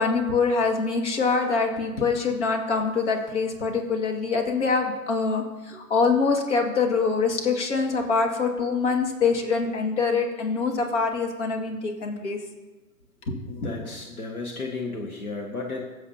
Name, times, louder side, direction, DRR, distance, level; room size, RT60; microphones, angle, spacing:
voice 1, 0.0-12.4 13.3-13.7, left 4 dB, 55° left, 3 dB, 2.1 m, -24 dB
voice 2, 13.4-15.8, left 3 dB, 80° left, 1 dB, 1.7 m, -34 dB
22.0 x 7.5 x 2.8 m, 1.2 s
figure-of-eight pair, 120°, 42 cm